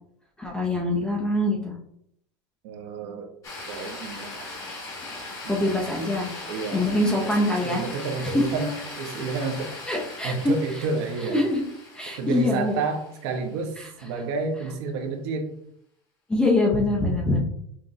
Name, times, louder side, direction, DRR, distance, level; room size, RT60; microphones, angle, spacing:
voice 1, 0.4-1.7 5.5-6.3 6.7-7.8 8.2-8.4 9.9-10.5 11.3-11.6 11.9-12.8 13.8-13.9 16.3-17.4, left 2 dB, 5° left, -2 dB, 0.5 m, -24 dB
voice 2, 2.6-3.3 3.6-4.5 5.4-5.8 6.5-7.4 7.6-9.8 10.2-11.4 12.2-15.5 17.1-17.3, right 4 dB, 55° right, 4 dB, 0.8 m, -30 dB
sound 1, 3.4-13.7, left 2 dB, 20° left, 0.9 m, -39 dB
5.8 x 2.8 x 2.6 m, 0.71 s
supercardioid pair, 175°, 16 cm